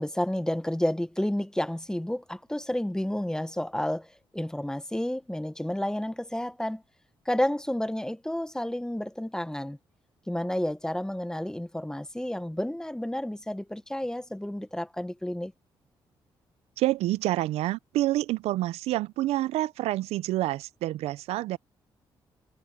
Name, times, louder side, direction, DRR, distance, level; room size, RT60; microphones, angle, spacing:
voice 1, 0.0-4.1 4.3-6.8 7.2-9.8 10.3-15.5, left 1 dB, 5° left, 1.3 m, -30 dB
voice 2, 16.8-21.6, right 16 dB, 85° right, 0.5 m, -28 dB
supercardioid pair, 55°, 11 cm